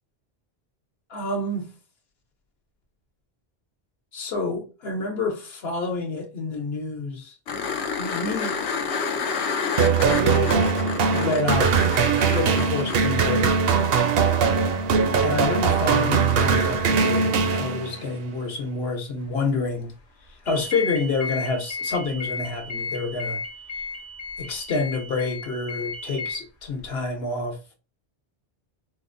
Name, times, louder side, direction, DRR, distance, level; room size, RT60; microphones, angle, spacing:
voice 1, 1.1-1.7 4.1-7.3 8.0-8.6 9.9-10.7 11.0-11.7 12.2-13.6 15.2-19.9 20.4-23.4 24.4-27.6, left 3 dB, 70° left, 1.1 m, -28 dB
sound 1, 7.5-13.0 15.7-15.8, left 5 dB, 85° left, 0.9 m, -29 dB
sound 2, 9.8-18.1, right 5 dB, 65° right, 0.7 m, -21 dB
sound 3, 20.5-26.4, left 3 dB, 45° left, 0.8 m, -33 dB
4.2 x 2.1 x 2.5 m
omnidirectional pair, 1.1 m